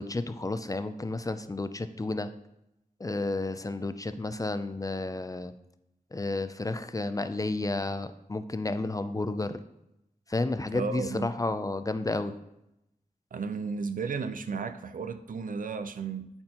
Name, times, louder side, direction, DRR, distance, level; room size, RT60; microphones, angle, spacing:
voice 1, 0.0-2.3 3.0-5.5 6.1-9.6 10.3-12.3, left 2 dB, 25° left, 0.4 m, -31 dB
voice 2, 10.7-11.4 13.3-16.3, right 5 dB, 70° right, 0.5 m, -34 dB
12.0 x 4.4 x 2.9 m
wide cardioid pair, 75°, 15 cm